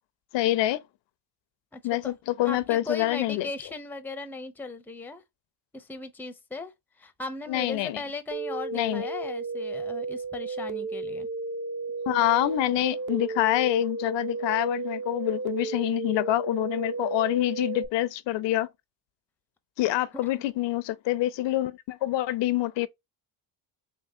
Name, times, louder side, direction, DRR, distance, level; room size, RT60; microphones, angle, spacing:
voice 1, 0.3-0.8 1.8-3.5 7.5-8.0 8.7-9.1 12.1-18.7 19.8-22.9, left 15 dB, 65° left, 0.6 m, -26 dB
voice 2, 1.7-2.1 2.4-5.2 5.7-6.7 7.0-11.3, left 3 dB, 5° left, 0.5 m, -37 dB
sound 1, 8.3-17.9, right 4 dB, 45° right, 0.7 m, -33 dB
3.7 x 3.0 x 2.6 m
cardioid pair, 100°, 46 cm